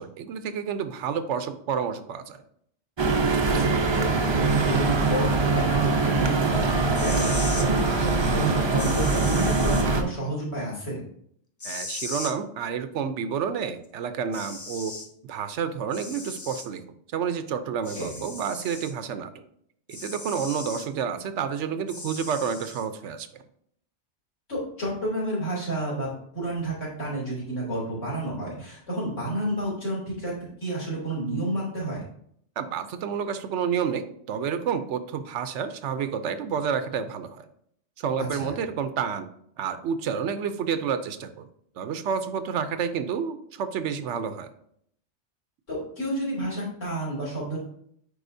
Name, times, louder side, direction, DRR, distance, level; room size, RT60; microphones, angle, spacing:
voice 1, 0.0-2.4 11.6-14.9 15.2-16.8 17.1-19.4 19.9-23.3 32.6-37.5 38.0-39.3 39.6-41.5 41.8-44.5, right 7 dB, 75° right, 10 dB, 0.9 m, -29 dB
sound 1, 3.0-10.0, right 3 dB, 35° right, 0.4 m, -23 dB
voice 2, 3.5-11.0 17.9-18.2 24.5-32.0 38.3-38.5 45.7-47.6, right 1 dB, 90° left, -5 dB, 3.3 m, -30 dB
sound 2, 6.9-7.7 8.8-9.8 11.6-12.3 13.8-13.9 14.3-15.1 15.9-16.7 17.8-18.9 19.9-20.9 21.9-22.8, left 3 dB, 30° left, 0.3 m, -37 dB
9.7 x 4.3 x 2.6 m, 0.68 s
omnidirectional pair, 1.2 m